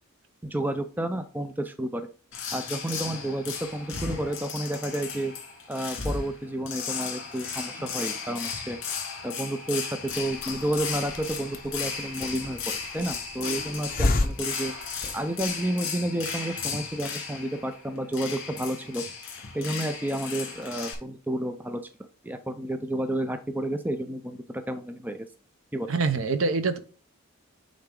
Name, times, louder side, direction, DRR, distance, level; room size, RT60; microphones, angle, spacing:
voice 1, 0.4-2.1 2.5-5.3 5.7-8.8 9.2-9.9 10.2-14.7 15.1-19.0 19.5-21.8 22.2-25.3 25.7-25.9, right 1 dB, 10° right, 7 dB, 0.5 m, -31 dB
sound 1, 2.3-20.9, left 5 dB, 60° left, 2.1 m, -35 dB
Hiss, 10.1-15.6, left 2 dB, 40° left, 0.8 m, -32 dB
voice 2, 25.9-26.8, right 4 dB, 65° right, 10 dB, 0.8 m, -25 dB
8.9 x 3.9 x 3.8 m, 0.37 s
head